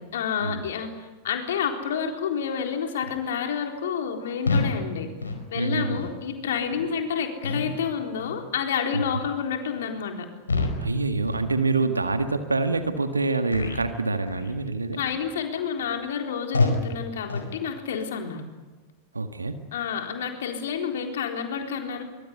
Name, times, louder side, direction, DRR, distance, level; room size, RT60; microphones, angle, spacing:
voice 1, 0.0-5.1 5.5-10.3 14.9-18.4 19.7-22.0, left 7 dB, 60° left, 3 dB, 4.0 m, -29 dB
sound 1, 4.4-4.8 5.2-5.4 6.0-6.2 6.7-6.9 7.4-7.8 8.2-8.5 8.9-9.2 9.7-9.9 10.4-10.9 11.2-11.5 12.0-12.2 12.7-12.9 13.5-13.9 14.2-14.5 15.0-15.3 15.8-15.9 16.5-16.9 17.3-17.5, left 3 dB, 75° left, 4.7 m, -28 dB
voice 2, 5.5-6.0 8.9-9.0 10.8-15.0 19.1-19.6, right 3 dB, 80° right, 8 dB, 1.7 m, -26 dB
25.0 x 23.5 x 8.3 m, 1.3 s
figure-of-eight pair, 90°, 0 cm